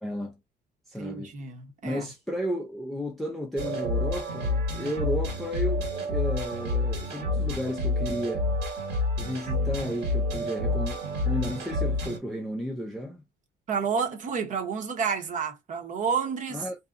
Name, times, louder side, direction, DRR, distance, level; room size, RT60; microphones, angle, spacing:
voice 1, 0.0-0.3 0.9-1.3 1.8-8.5 9.2-13.2 16.5-16.8, equal, ahead, 0.5 m, -33 dB
voice 2, 1.0-2.0 13.7-16.6, right 6 dB, 50° right, 0.9 m, -30 dB
sound 1, 3.6-12.2, left 2 dB, 80° right, 1.6 m, -28 dB
2.7 x 2.3 x 2.4 m
cardioid pair, 110°, 17 cm